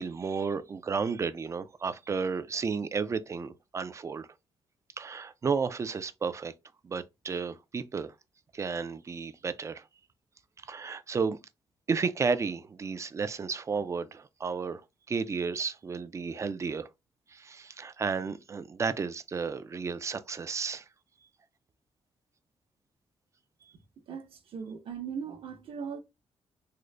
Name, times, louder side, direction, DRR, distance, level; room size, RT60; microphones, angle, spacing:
voice 1, 0.0-4.3 5.0-6.5 6.8-8.1 8.5-9.8 10.7-11.4 11.9-14.8 15.1-16.9 17.3-20.8, right 5 dB, 30° right, 0.3 m, -32 dB
voice 2, 24.1-26.0, right 6 dB, 65° right, 0.8 m, -39 dB
3.7 x 2.1 x 3.2 m
wide cardioid pair, 130°, 10 cm